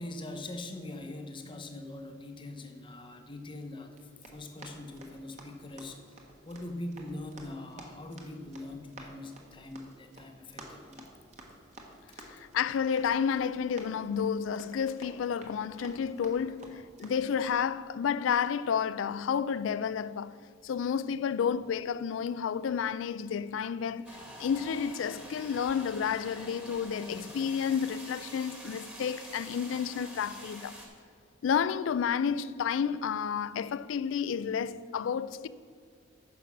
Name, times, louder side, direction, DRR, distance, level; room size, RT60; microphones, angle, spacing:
voice 1, 0.0-11.0 12.2-12.3, left 1 dB, 25° left, 0.8 m, -42 dB
Run, 3.9-17.5, right 1 dB, 35° right, 1.3 m, -52 dB
voice 2, 12.2-20.4 20.6-30.8 31.4-35.5, left 7 dB, 85° left, 0.3 m, -31 dB
sound 1, 24.0-30.9, equal, 10° right, 1.3 m, -46 dB
9.4 x 6.1 x 5.9 m
head